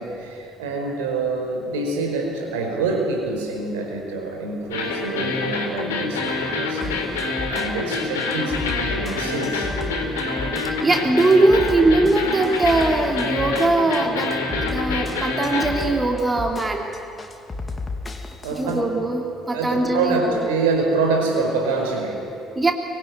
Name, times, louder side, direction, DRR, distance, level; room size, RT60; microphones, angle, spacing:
voice 1, 0.0-9.7 18.4-18.8 19.4-22.4, right 3 dB, 70° right, 2 dB, 5.1 m, -26 dB
sound 1, 4.7-15.9, left 3 dB, 75° left, 3.9 m, -26 dB
sound 2, 6.8-18.8, left 2 dB, 20° left, 3.3 m, -33 dB
voice 2, 10.8-14.3 14.6-16.9 18.6-20.4 22.6-22.7, right 2 dB, 20° right, 2 dB, 3.2 m, -20 dB
24.5 x 24.0 x 9.6 m, 2.5 s
figure-of-eight pair, 55°, 0 cm